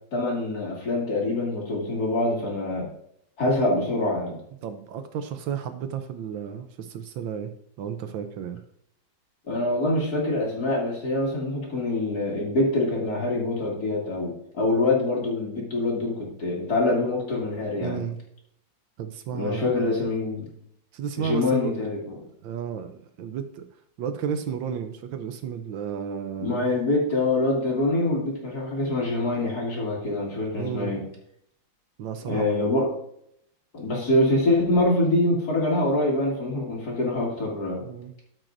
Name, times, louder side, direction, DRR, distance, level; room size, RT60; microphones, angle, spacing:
voice 1, 0.1-2.9 3.4-4.4 9.5-18.0 19.3-20.5 21.2-22.1 26.4-31.0 32.3-32.9 33.7-37.8, left 2 dB, 45° left, -2 dB, 2.7 m, -25 dB
voice 2, 4.6-7.5 7.8-8.6 17.8-18.2 19.0-20.0 20.9-21.7 22.4-23.7 24.0-26.7 30.5-31.0 32.0-32.7 37.8-38.1, right 8 dB, 75° right, 8 dB, 1.3 m, -33 dB
13.5 x 5.9 x 2.6 m, 0.70 s
omnidirectional pair, 2.2 m